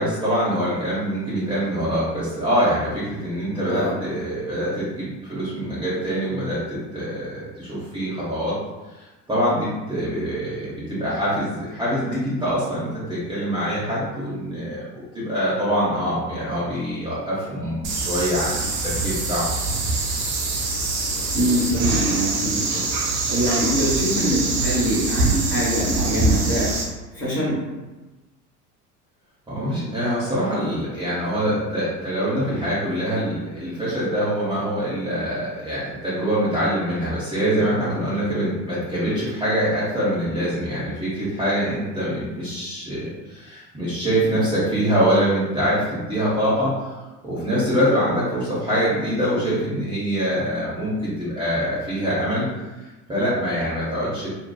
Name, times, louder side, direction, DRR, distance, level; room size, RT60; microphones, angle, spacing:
voice 1, 0.0-8.6 8.9-18.7 19.0-19.4 29.5-47.0 47.2-52.5 53.1-54.3, equal, 10° right, -10 dB, 0.8 m, -24 dB
sound 1, 17.8-26.8, right 3 dB, 45° right, 0.7 m, -24 dB
voice 2, 21.3-26.7 27.1-27.6, equal, 25° left, -7 dB, 1.1 m, -24 dB
2.8 x 2.2 x 2.2 m, 1.1 s
hypercardioid pair, 75°, 47 cm